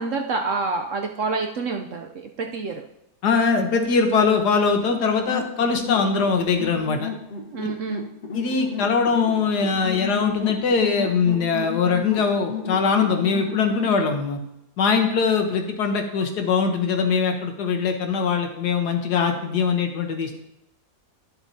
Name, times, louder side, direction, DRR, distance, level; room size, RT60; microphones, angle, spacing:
voice 1, 0.0-2.8 7.5-8.1, right 3 dB, 65° right, 3 dB, 0.8 m, -28 dB
voice 2, 3.2-7.1 8.3-14.4 14.8-20.4, left 5 dB, 70° left, 4 dB, 1.5 m, -22 dB
sound 1, 5.3-14.0, left 6 dB, 45° left, 1.2 m, -33 dB
11.0 x 7.2 x 2.7 m, 0.84 s
omnidirectional pair, 1.8 m